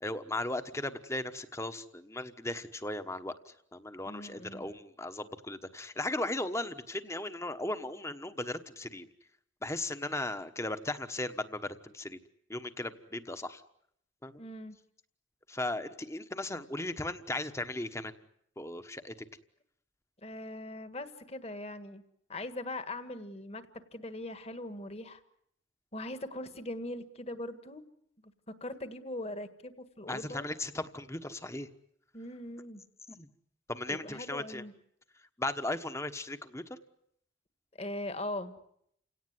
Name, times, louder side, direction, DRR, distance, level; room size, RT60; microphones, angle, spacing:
voice 1, 0.0-9.1 9.6-12.2 12.5-13.6 14.2-14.4 15.5-18.1 18.6-19.1 30.1-31.7 33.1-33.3 33.7-34.6 35.4-36.6, left 2 dB, 15° left, 10 dB, 1.2 m, -37 dB
voice 2, 4.0-4.7 14.4-14.8 20.2-22.0 22.3-23.6 23.9-25.2 25.9-27.9 28.5-30.5 32.1-32.8 33.9-34.7 37.8-38.6, left 1 dB, 30° left, 11 dB, 1.7 m, -40 dB
30.0 x 18.0 x 9.5 m, 0.73 s
head